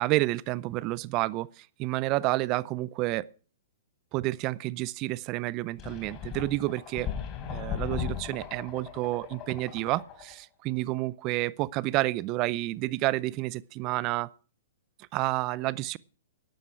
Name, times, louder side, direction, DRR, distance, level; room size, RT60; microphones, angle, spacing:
voice 1, 0.0-3.3 4.1-7.1 7.5-14.3 15.1-16.0, right 19 dB, 40° right, 0.6 m, -30 dB
sound 1, 5.8-10.3, left 9 dB, 30° left, 3.8 m, -37 dB
12.5 x 12.0 x 4.7 m
hypercardioid pair, 120°, 0 cm